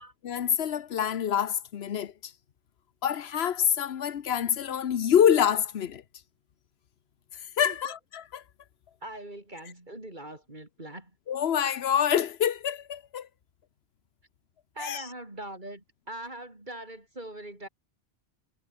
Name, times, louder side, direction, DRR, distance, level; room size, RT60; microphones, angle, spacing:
voice 1, 0.2-2.3 3.0-6.0 7.6-8.4 11.3-13.3 14.8-15.0, left 9 dB, 80° left, 1.1 m, -26 dB
voice 2, 7.6-7.9 9.0-11.1 14.7-17.7, right 1 dB, 50° right, 4.8 m, -42 dB
omnidirectional pair, 1.1 m